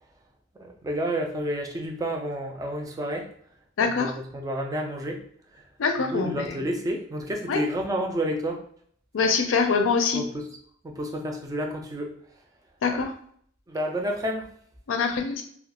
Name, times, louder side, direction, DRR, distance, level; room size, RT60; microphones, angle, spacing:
voice 1, 0.6-3.3 3.8-5.2 6.1-8.6 10.1-10.5 10.8-12.1 12.9-13.0 13.7-14.5, equal, 15° right, 2 dB, 0.3 m, -30 dB
voice 2, 3.8-4.1 5.8-6.6 7.5-7.6 9.1-10.2 12.8-13.2 14.9-15.4, left 5 dB, 75° left, 5 dB, 0.4 m, -24 dB
2.3 x 2.2 x 2.8 m, 0.62 s
head